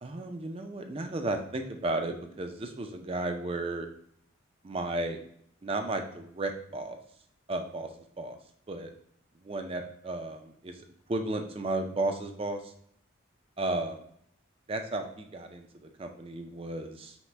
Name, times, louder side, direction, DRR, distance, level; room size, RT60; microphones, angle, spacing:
voice 1, 0.0-3.9 4.6-5.2 5.6-7.0 7.5-7.9 8.2-8.4 8.7-8.9 9.4-10.8 11.1-12.7 13.6-14.0 14.7-17.2, right 2 dB, 25° right, 5 dB, 0.4 m, -34 dB
5.7 x 2.1 x 3.2 m, 0.67 s
head